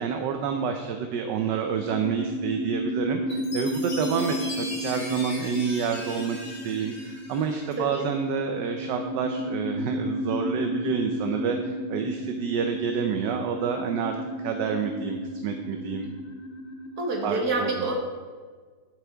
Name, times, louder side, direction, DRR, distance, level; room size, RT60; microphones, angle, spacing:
voice 1, 0.0-16.1 17.2-17.7, right 7 dB, 75° right, 5 dB, 1.3 m, -29 dB
sound 1, 0.9-17.3, equal, 90° left, 0.5 m, -33 dB
Chime, 3.3-7.9, left 1 dB, 30° left, 2.5 m, -39 dB
voice 2, 7.8-8.1 17.0-17.9, right 2 dB, 55° right, 0 dB, 2.1 m, -27 dB
12.0 x 7.9 x 3.4 m, 1.5 s
omnidirectional pair, 2.0 m